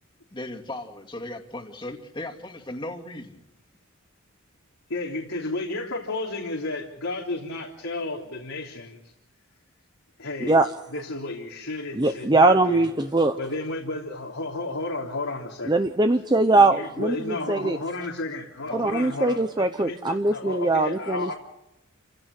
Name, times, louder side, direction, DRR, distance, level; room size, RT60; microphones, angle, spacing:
voice 1, 0.3-3.4 18.7-18.8, left 1 dB, 20° left, 1 dB, 2.5 m, -37 dB
voice 2, 4.9-9.1 10.2-10.5 10.9-12.9 13.4-15.8 16.5-21.3, left 2 dB, 85° left, -2 dB, 3.4 m, -32 dB
voice 3, 12.0-13.4 15.7-17.8 18.7-21.3, right 2 dB, 20° right, 7 dB, 0.7 m, -21 dB
28.5 x 16.5 x 6.7 m, 0.92 s
head